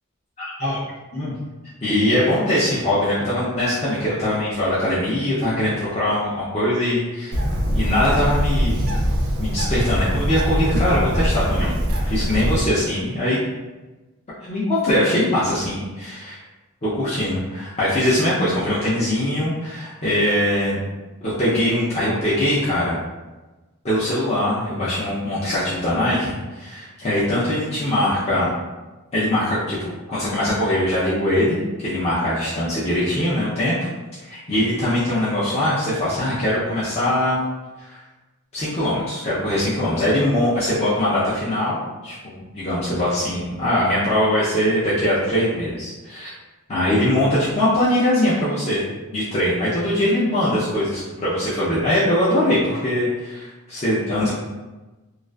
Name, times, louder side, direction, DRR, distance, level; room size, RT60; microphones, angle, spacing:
voice 1, 0.4-0.8 1.1-1.3 1.8-7.3 7.7-8.9 9.4-11.8 12.0-13.4 14.4-16.4 16.8-20.8 21.2-23.0 23.8-28.5 29.1-33.9 34.2-37.4 37.8-38.0 38.5-46.3 46.7-48.8 49.1-54.3, left 1 dB, 30° left, -10 dB, 0.4 m, -22 dB
Bird, 7.3-12.6, equal, 70° right, 0.4 m, -22 dB
2.4 x 2.3 x 2.2 m, 1.2 s
head